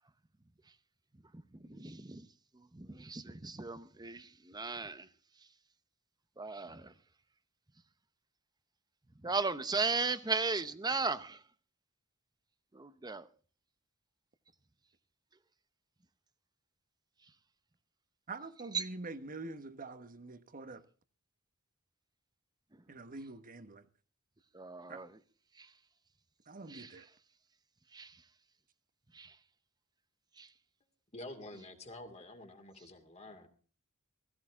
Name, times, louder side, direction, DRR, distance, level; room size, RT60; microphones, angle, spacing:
voice 1, 1.5-2.3 2.7-5.1 6.4-6.9 9.2-11.4 12.7-13.3 18.7-18.9 24.5-25.1 25.6-25.7 26.7-26.9 27.9-28.1 29.1-29.3 30.4-30.5, right 4 dB, 20° right, 0.8 m, -36 dB
voice 2, 18.3-20.8 22.9-23.9 24.9-25.0 26.5-27.1, right 3 dB, 40° right, 1.2 m, -45 dB
voice 3, 31.1-33.5, left 1 dB, 30° left, 2.4 m, -48 dB
16.5 x 16.0 x 3.7 m
head